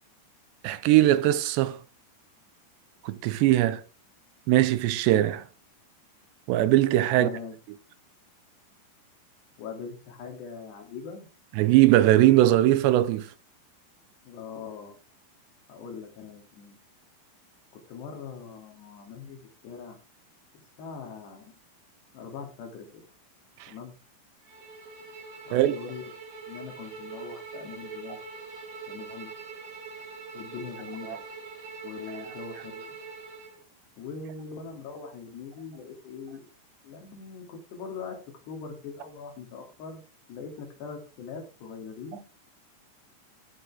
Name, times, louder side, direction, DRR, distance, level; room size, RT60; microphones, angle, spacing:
voice 1, 0.6-1.8 3.0-3.8 4.5-5.4 6.5-7.3 11.5-13.3 23.6-23.7 25.5-25.8 31.1-31.2 32.1-32.2, right 14 dB, 85° right, 3.1 m, -20 dB
voice 2, 7.1-7.6 9.6-11.3 14.2-15.0 15.7-16.8 17.9-20.0 20.8-21.6 22.1-23.1 23.7-23.9 25.5-26.1 26.5-28.2 28.9-29.3 30.3-31.2 31.8-32.9 34.0-36.5 36.8-38.2 38.5-40.0 40.3-42.2, left 5 dB, 75° left, 4.8 m, -41 dB
Bowed string instrument, 24.4-33.6, right 4 dB, 50° right, 4.3 m, -43 dB
15.5 x 7.0 x 3.6 m
omnidirectional pair, 4.9 m